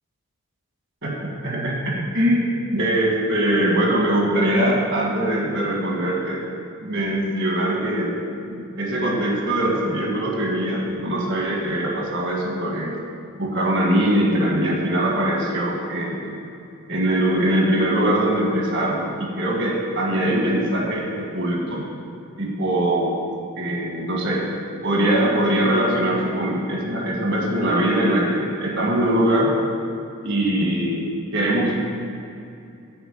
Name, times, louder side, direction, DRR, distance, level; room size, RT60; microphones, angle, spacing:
voice 1, 1.0-2.4 2.7-6.4 6.8-8.2 8.5-12.9 13.4-16.4 16.9-21.8 22.4-23.2 23.6-24.4 24.8-29.5 30.2-31.0 31.3-31.8, right 1 dB, 55° right, -2 dB, 1.7 m, -22 dB
9.9 x 4.4 x 7.2 m, 2.6 s
head